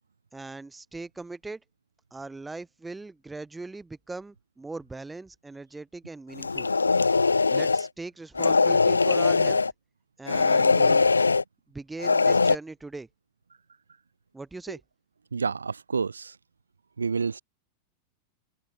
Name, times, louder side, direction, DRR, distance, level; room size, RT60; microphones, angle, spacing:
voice 1, 0.3-1.6 2.1-6.7 7.5-9.6 10.2-11.1 11.7-13.1 14.3-14.8, right 3 dB, 10° right, 1.7 m, -40 dB
sound 1, 6.4-7.9 8.4-9.7 10.3-11.4 12.0-12.6, left 4 dB, 80° left, 0.3 m, -21 dB
voice 2, 15.3-16.4 17.0-17.4, right 5 dB, 75° right, 0.3 m, -29 dB
open air
figure-of-eight pair, 90°, 0 cm